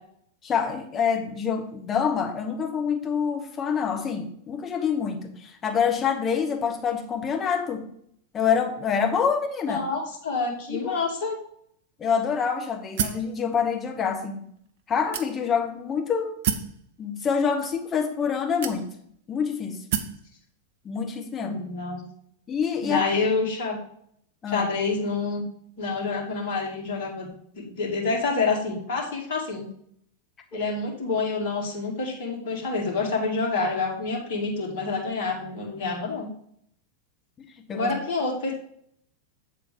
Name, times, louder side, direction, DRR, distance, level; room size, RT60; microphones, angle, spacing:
voice 1, 0.4-7.9 8.3-9.8 10.7-11.0 12.0-14.5 14.9-16.4 17.0-18.9 19.3-19.8 20.8-21.6 22.5-23.0 24.4-24.7 30.5-30.6 37.7-37.9, left 6 dB, 25° left, 3 dB, 1.2 m, -26 dB
voice 2, 9.7-11.4 21.4-22.0 22.8-23.8 24.5-25.4 25.8-29.6 30.5-36.3 37.7-38.5, left 4 dB, 50° left, -2 dB, 2.3 m, -27 dB
sound 1, 13.0-13.3 14.1-14.2 15.1-15.7 16.4-16.8 17.7-17.8 18.6-19.2 19.9-20.2, right 9 dB, 55° right, 0.6 m, -28 dB
8.1 x 3.7 x 6.1 m, 0.67 s
figure-of-eight pair, 90°, 0 cm